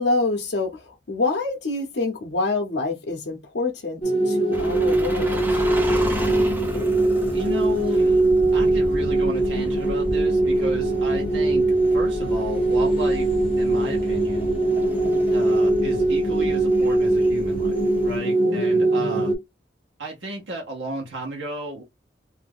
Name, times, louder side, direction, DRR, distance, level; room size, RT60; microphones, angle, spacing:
voice 1, 0.0-4.0 4.3-5.6 15.0-15.2 18.4-19.3, left 3 dB, 70° left, 0.6 m, -27 dB
sound 1, 4.0-19.4, right 2 dB, 30° left, 0.8 m, -21 dB
sound 2, 4.5-18.2, equal, 10° right, 0.6 m, -34 dB
voice 2, 7.3-8.2 8.5-14.5 15.3-17.7 18.0-19.3 20.0-21.8, right 1 dB, 85° right, 0.9 m, -34 dB
2.6 x 2.4 x 3.4 m
head